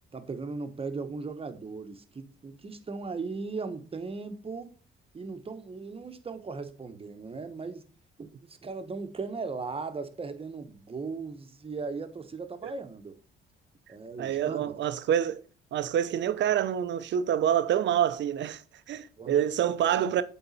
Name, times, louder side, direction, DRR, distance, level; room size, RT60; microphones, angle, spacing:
voice 1, 0.1-4.7 5.1-7.9 8.2-13.2 13.9-14.7 19.2-19.5 19.9-20.0, right 4 dB, 30° right, 1.0 m, -37 dB
voice 2, 14.2-15.4 15.7-18.6 18.9-20.2, right 10 dB, 65° right, 0.7 m, -27 dB
7.9 x 4.0 x 4.2 m
cardioid pair, 90°, 20 cm